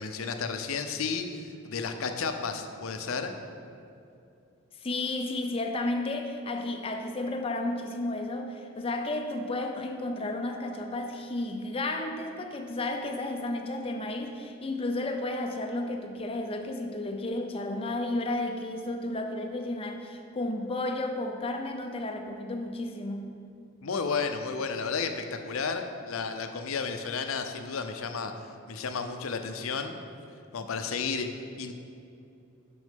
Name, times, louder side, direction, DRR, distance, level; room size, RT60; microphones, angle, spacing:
voice 1, 0.0-3.3 23.8-28.3 28.7-30.0 30.5-31.3 31.6-31.7, left 5 dB, 75° left, 6 dB, 0.6 m, -32 dB
voice 2, 4.8-23.3, left 2 dB, 25° left, 4 dB, 0.5 m, -32 dB
6.3 x 6.2 x 5.2 m, 2.6 s
head